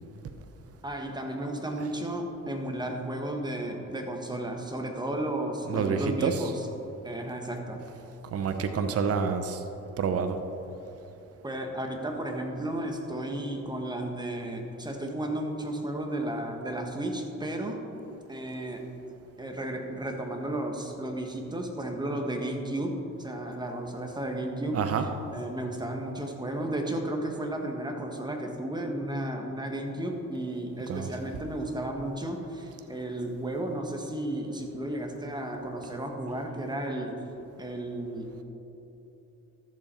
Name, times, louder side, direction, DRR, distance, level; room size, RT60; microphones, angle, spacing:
voice 1, 0.8-6.5 7.0-7.8 11.4-17.8 18.3-18.9 19.4-24.8 25.3-37.2 37.6-38.4, right 1 dB, 15° right, 3 dB, 1.4 m, -33 dB
voice 2, 5.6-6.6 8.3-9.6 10.0-10.4 24.7-25.1 30.9-31.4, right 6 dB, 50° right, 7 dB, 0.8 m, -28 dB
13.0 x 7.1 x 4.4 m, 3.0 s
cardioid pair, 90°, 30 cm